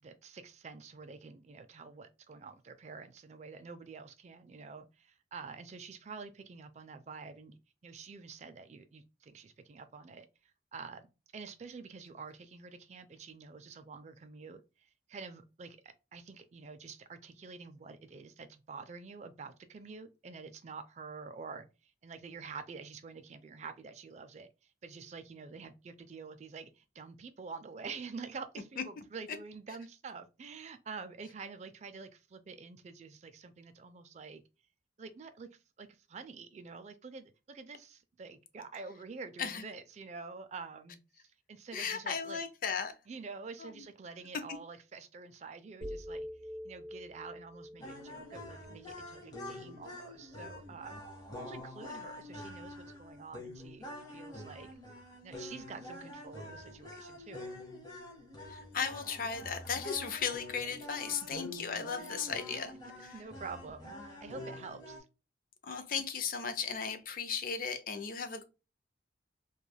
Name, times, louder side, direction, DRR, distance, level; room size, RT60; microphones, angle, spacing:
voice 1, 0.0-11.0 11.3-34.4 35.0-42.4 43.1-46.3 46.6-51.0 51.3-54.7 55.2-57.6 62.0-62.2 62.5-62.6 63.1-65.1, right 4 dB, 40° right, 0.3 m, -48 dB
voice 2, 41.7-43.0 43.6-43.8 44.5-44.6 58.5-62.7 63.0-63.1 65.6-68.4, left 6 dB, 50° left, 0.4 m, -36 dB
sound 1, 45.8-49.9, equal, 15° right, 1.0 m, -46 dB
sound 2, 47.8-65.0, left 1 dB, 20° left, 0.9 m, -46 dB
3.2 x 2.3 x 2.2 m
head